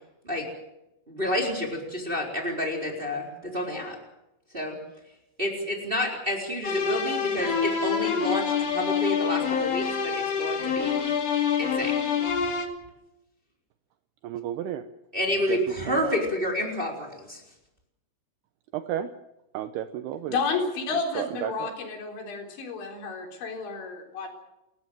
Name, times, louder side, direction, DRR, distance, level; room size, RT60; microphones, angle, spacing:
voice 1, 1.1-4.0 4.5-4.8 5.4-11.0 11.6-12.0 15.1-17.4, left 1 dB, 10° right, 0 dB, 3.7 m, -29 dB
sound 1, 6.6-12.7, left 7 dB, 40° left, 2.7 m, -26 dB
voice 2, 14.2-14.8 15.5-16.2 18.7-19.1 19.5-20.4 20.9-21.7, right 11 dB, 80° right, 9 dB, 2.3 m, -33 dB
voice 3, 20.3-24.3, left 4 dB, 65° left, 2 dB, 6.2 m, -31 dB
29.5 x 14.5 x 7.7 m, 0.91 s
omnidirectional pair, 5.7 m